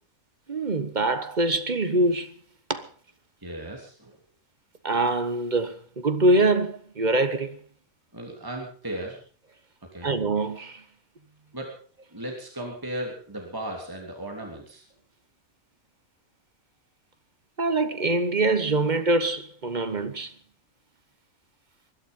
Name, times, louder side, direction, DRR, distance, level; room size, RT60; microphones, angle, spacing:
voice 1, 0.5-2.3 2.7-2.9 4.8-7.6 10.0-10.8 17.6-20.3, right 2 dB, 35° right, 1.1 m, -24 dB
voice 2, 3.4-4.1 8.1-9.2 9.9-10.1 11.5-11.7 12.1-14.8, right 1 dB, 15° right, 3.2 m, -36 dB
21.0 x 11.5 x 5.4 m
omnidirectional pair, 1.5 m